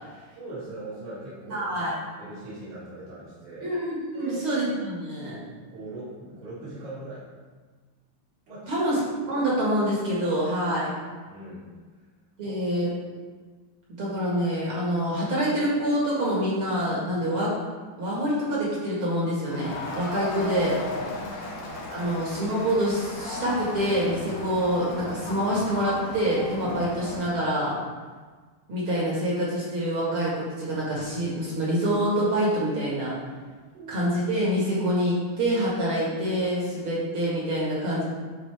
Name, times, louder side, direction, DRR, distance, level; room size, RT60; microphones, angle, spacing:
voice 1, 0.3-3.7 4.1-4.4 5.6-7.3 8.5-9.0 11.3-11.6 12.4-12.6 21.0-21.3 22.0-22.1 33.7-34.1, right 2 dB, 80° right, -13 dB, 4.2 m, -40 dB
voice 2, 1.5-1.9 3.6-5.4 8.7-9.0 9.3-10.9 12.4-12.9 14.0-17.5 18.0-20.8 21.9-27.8 28.7-33.1 33.9-38.0, equal, 45° right, -6 dB, 1.9 m, -26 dB
Crowd, 19.5-27.4, left 2 dB, 65° left, 1.5 m, -36 dB
11.0 x 4.4 x 3.4 m, 1.5 s
omnidirectional pair, 4.4 m